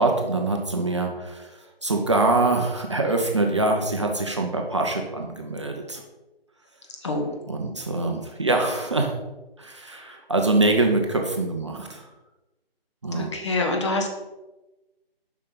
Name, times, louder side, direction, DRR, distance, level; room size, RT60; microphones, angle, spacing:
voice 1, 0.0-6.0 7.5-9.1 9.6-12.1 13.0-13.3, right 2 dB, 30° right, 2 dB, 0.6 m, -24 dB
voice 2, 7.0-7.4 13.1-14.1, left 2 dB, 30° left, 2 dB, 0.8 m, -26 dB
7.1 x 5.7 x 4.0 m, 1.0 s
figure-of-eight pair, 155°, 30 cm